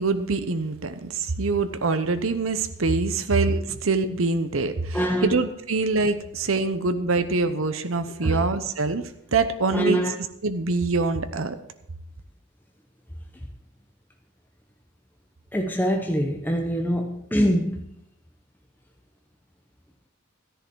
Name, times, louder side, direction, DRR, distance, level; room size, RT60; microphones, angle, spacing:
voice 1, 0.0-9.0 9.3-10.0 10.4-11.6, right 3 dB, 70° right, 10 dB, 0.9 m, -24 dB
voice 2, 4.9-5.4 8.2-8.4 9.7-10.2 15.5-17.9, equal, 10° left, 2 dB, 0.8 m, -24 dB
13.5 x 10.5 x 4.7 m, 0.77 s
head